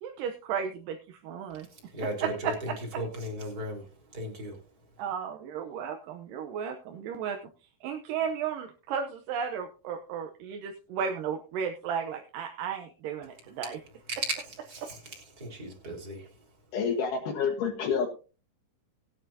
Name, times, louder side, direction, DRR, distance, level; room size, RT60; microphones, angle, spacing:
voice 1, 0.0-1.7 2.2-2.5 5.0-7.4 7.8-13.8 14.8-14.9, right 7 dB, 80° right, 5 dB, 2.5 m, -34 dB
voice 2, 1.7-4.6 14.1-16.3, right 1 dB, 25° right, 0 dB, 3.5 m, -36 dB
voice 3, 16.7-18.1, left 6 dB, 70° left, -2 dB, 2.9 m, -28 dB
19.5 x 9.2 x 2.7 m, 0.35 s
omnidirectional pair, 3.8 m